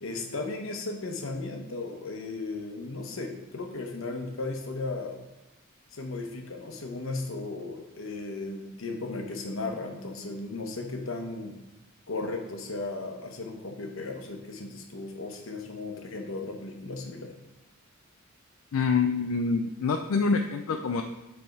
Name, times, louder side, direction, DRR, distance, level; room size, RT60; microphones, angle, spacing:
voice 1, 0.0-5.2 5.9-11.6 12.1-17.3, left 3 dB, 75° left, 4 dB, 0.9 m, -36 dB
voice 2, 18.7-21.0, left 4 dB, 90° left, 5 dB, 0.4 m, -26 dB
7.6 x 3.4 x 4.6 m, 0.99 s
head